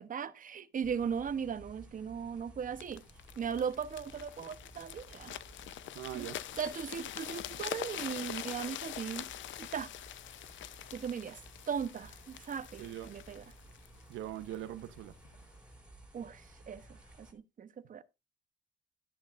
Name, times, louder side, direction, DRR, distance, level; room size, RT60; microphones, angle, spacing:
voice 1, 0.0-3.0 3.4-5.4 6.1-6.3 6.6-9.3 9.6-9.9 10.9-11.4 11.7-13.4 16.1-18.0, right 7 dB, 45° right, 0.9 m, -38 dB
sound 1, 0.8-17.3, right 1 dB, 5° right, 4.4 m, -56 dB
sound 2, 2.8-14.6 15.2-15.4, left 12 dB, 70° left, 0.7 m, -44 dB
voice 2, 5.9-6.4 12.8-13.1 14.1-15.1, right 12 dB, 90° right, 0.9 m, -41 dB
12.5 x 10.5 x 2.5 m
cardioid pair, 90°, 20 cm